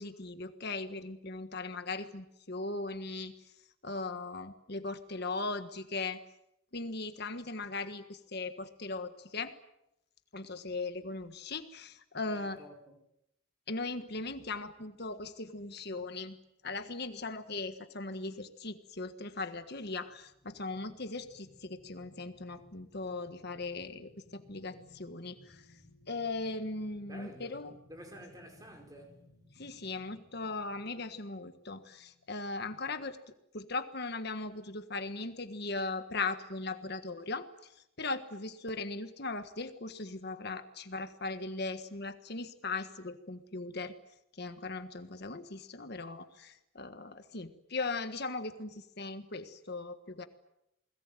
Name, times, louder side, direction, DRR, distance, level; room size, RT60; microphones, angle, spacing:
voice 1, 0.0-3.3 3.8-6.2 6.7-9.5 10.3-12.6 13.7-16.4 16.6-25.6 26.1-27.8 29.6-33.2 33.5-37.4 38.0-43.9 44.4-50.3, left 3 dB, 50° left, 1.5 m, -38 dB
voice 2, 12.2-13.0 27.1-27.6 27.9-29.2, equal, 15° right, 5.3 m, -50 dB
sound 1, 19.8-32.5 33.0-33.1, left 1 dB, 25° left, 3.7 m, -61 dB
29.0 x 21.0 x 9.1 m
head